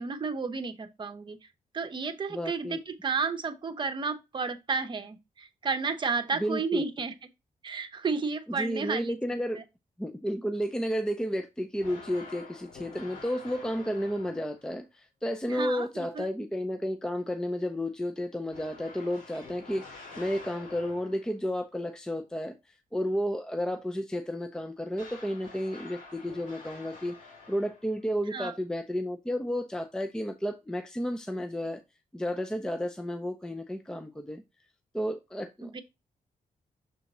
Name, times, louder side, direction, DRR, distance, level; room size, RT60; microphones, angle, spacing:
voice 1, 0.0-1.4 1.7-7.1 7.6-9.1 9.5-9.6 15.5-16.3 28.3-28.6 35.6-35.8, right 5 dB, 35° right, 0.9 m, -32 dB
voice 2, 2.3-2.8 6.3-6.8 8.6-9.6 10.0-22.6 22.9-31.8 32.1-34.4 34.9-35.8, equal, 5° left, 0.5 m, -32 dB
sound 1, 11.8-14.7 18.5-21.4 24.9-28.0, left 3 dB, 65° left, 3.0 m, -48 dB
7.0 x 3.7 x 4.1 m
wide cardioid pair, 165°, 15 cm